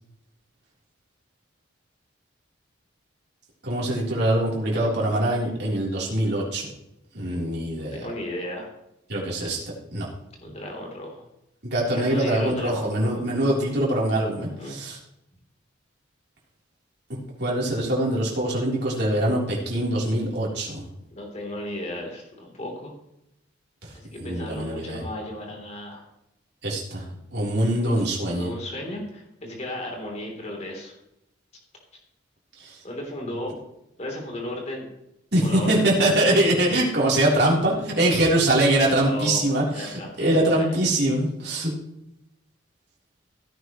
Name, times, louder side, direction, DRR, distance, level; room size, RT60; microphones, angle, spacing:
voice 1, 3.6-6.7 7.1-8.1 9.1-9.6 9.9-10.1 11.6-15.0 17.4-20.8 23.8-23.9 24.2-25.0 26.6-27.0 27.3-28.5 32.6-32.8 35.3-41.7, right 1 dB, 55° right, -4 dB, 3.6 m, -23 dB
voice 2, 7.9-8.7 10.4-11.2 11.9-13.2 14.6-14.8 21.1-22.9 23.9-26.0 27.8-30.9 32.8-33.5 34.0-34.9 35.4-36.4 39.0-39.4 39.7-40.8, left 1 dB, 35° left, 0 dB, 3.3 m, -35 dB
16.0 x 10.0 x 3.1 m, 0.83 s
head